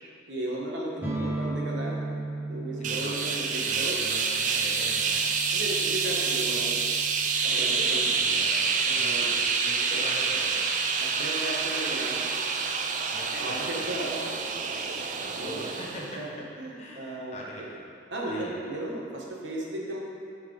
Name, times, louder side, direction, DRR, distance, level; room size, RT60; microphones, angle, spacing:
voice 1, 0.3-4.0 5.5-6.8 7.4-8.0 8.9-9.4 9.9-10.1 11.0-12.3 13.4-15.6 16.2-16.3 16.6-17.7 18.1-20.0, right 1 dB, 85° right, -3 dB, 1.3 m, -35 dB
sound 1, 1.0-8.6, right 2 dB, 10° right, 0.8 m, -37 dB
voice 2, 2.8-5.3 7.5-10.6 13.1-14.0 15.2-16.5 16.8-17.8 18.3-18.6, left 1 dB, 35° left, -3 dB, 1.0 m, -41 dB
sound 2, 2.8-16.2, right 5 dB, 45° right, 0.4 m, -27 dB
9.2 x 4.8 x 3.3 m, 2.6 s
head